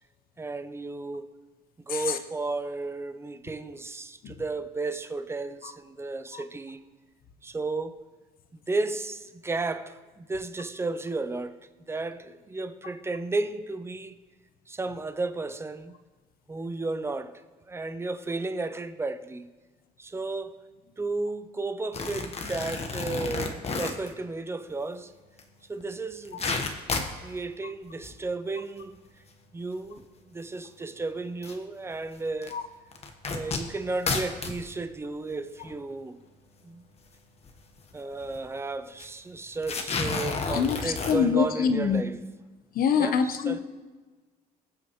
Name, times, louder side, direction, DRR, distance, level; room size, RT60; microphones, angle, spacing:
voice 1, 0.4-1.3 1.9-6.8 7.4-8.1 8.5-14.2 14.7-15.9 16.5-19.5 20.0-20.7 21.0-25.1 25.7-26.5 27.1-29.0 29.5-32.6 33.3-36.2 36.6-36.8 37.9-42.2 43.0-43.6, right 3 dB, 15° right, 0.6 m, -33 dB
sound 1, 21.9-24.1 25.4-25.5 25.8-25.9 26.1-27.2 27.9-28.2 28.8-28.9 30.0-30.1 31.4-31.5 32.4-32.5 32.9-34.6 35.3-35.4 35.6-35.7 37.4-37.6 37.9-38.0 38.2-38.4 39.0-39.1 39.6-41.1, left 4 dB, 40° left, 1.3 m, -31 dB
voice 2, 40.3-42.0 42.7-43.6, left 6 dB, 60° left, 1.0 m, -25 dB
21.0 x 7.0 x 3.1 m
cardioid pair, 110°, 17 cm